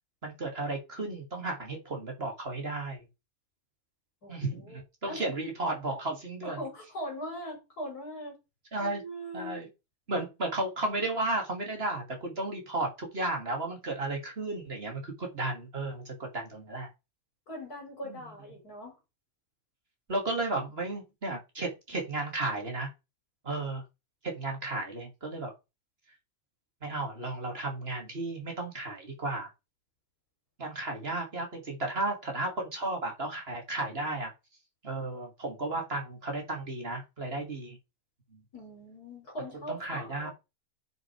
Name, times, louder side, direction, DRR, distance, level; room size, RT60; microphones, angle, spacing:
voice 1, 0.2-3.0 4.3-6.6 8.7-9.0 9.3-9.7 10.1-16.9 18.0-18.3 20.1-22.9 23.4-23.8 24.2-25.5 26.8-29.5 30.6-34.3 34.8-37.8 38.3-38.4 39.7-40.3, right 2 dB, 40° right, 2.8 m, -34 dB
voice 2, 4.2-5.4 6.4-8.4 8.8-9.6 17.5-19.0 38.5-40.3, equal, 80° left, 4.7 m, -41 dB
9.0 x 5.5 x 4.7 m
omnidirectional pair, 1.6 m